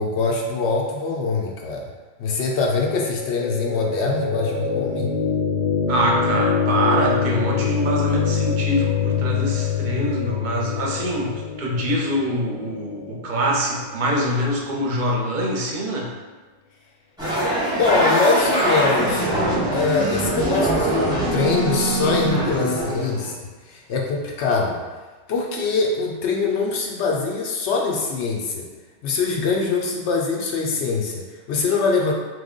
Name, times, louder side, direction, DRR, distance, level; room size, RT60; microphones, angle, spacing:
voice 1, 0.0-1.9 2.2-5.1 17.8-19.3 19.7-24.8 25.3-28.7 29.0-32.1, left 4 dB, 80° left, -1 dB, 0.9 m, -23 dB
sound 1, 2.8-14.8, left 6 dB, 55° left, 0.4 m, -25 dB
voice 2, 5.9-16.1, equal, 50° right, -2 dB, 0.7 m, -24 dB
sound 2, 17.2-23.3, right 1 dB, 5° right, 0.9 m, -22 dB
3.2 x 2.1 x 3.6 m, 1.3 s
omnidirectional pair, 1.1 m